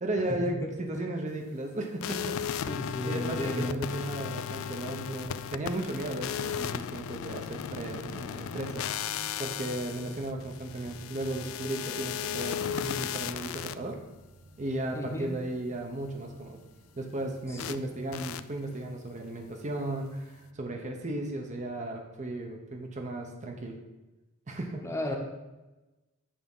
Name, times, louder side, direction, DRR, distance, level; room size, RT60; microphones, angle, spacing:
voice 1, 0.0-2.7 3.0-8.8 9.4-14.0 14.6-16.6 17.0-23.7 24.5-24.8, right 1 dB, 35° right, 2 dB, 0.8 m, -35 dB
sound 1, 2.0-13.7 17.6-17.8 18.1-18.4, left 9 dB, 70° left, 0.3 m, -36 dB
voice 2, 2.7-3.8 14.9-15.3 17.5-17.7 24.8-25.2, left 1 dB, 15° left, 1 dB, 0.9 m, -34 dB
sound 2, 5.8-22.1, right 1 dB, 80° right, 1.5 m, -53 dB
8.6 x 3.5 x 5.4 m, 1.1 s
head